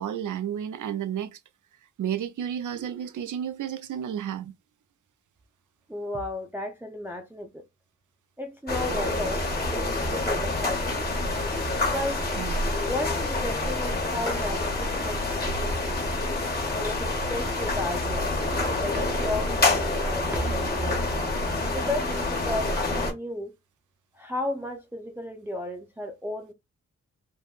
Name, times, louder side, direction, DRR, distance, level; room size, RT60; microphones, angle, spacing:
voice 1, 0.0-1.4 2.0-4.5 12.4-12.5 19.2-19.3, right 9 dB, 90° right, 0.5 m, -32 dB
voice 2, 5.9-7.6 8.4-11.1 11.9-12.2 12.8-16.0 16.7-18.3 18.8-21.1 21.7-23.5 24.1-26.5, left 1 dB, 5° right, 0.5 m, -34 dB
sound 1, 8.7-23.1, left 2 dB, 30° left, 1.0 m, -27 dB
3.5 x 2.1 x 2.3 m
wide cardioid pair, 140°, 29 cm